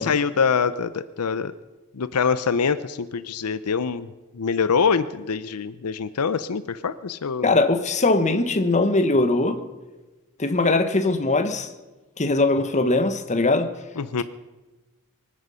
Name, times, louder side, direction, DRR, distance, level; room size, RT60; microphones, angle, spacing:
voice 1, 0.0-1.5 1.9-4.1 4.3-7.5 14.0-14.2, left 5 dB, 90° left, 14 dB, 0.6 m, -24 dB
voice 2, 7.4-9.6 10.4-11.7 12.2-13.7, left 2 dB, 35° left, 8 dB, 1.2 m, -21 dB
24.5 x 10.0 x 5.6 m, 1.2 s
head